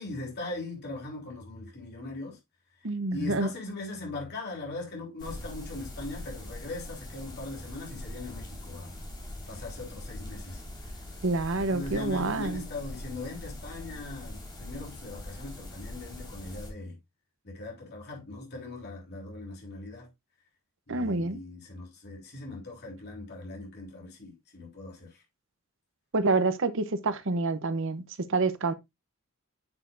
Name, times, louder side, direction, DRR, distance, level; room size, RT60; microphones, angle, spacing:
voice 1, 0.0-2.4 3.1-9.0 9.5-10.6 11.6-17.0 17.4-20.1 20.9-25.2, left 2 dB, 50° left, 3.6 m, -40 dB
voice 2, 2.8-3.5 11.2-12.6 20.9-21.4 26.1-28.7, right 3 dB, 60° right, 0.9 m, -27 dB
sound 1, 5.2-16.7, left 1 dB, 20° left, 2.9 m, -42 dB
9.8 x 6.6 x 2.5 m
head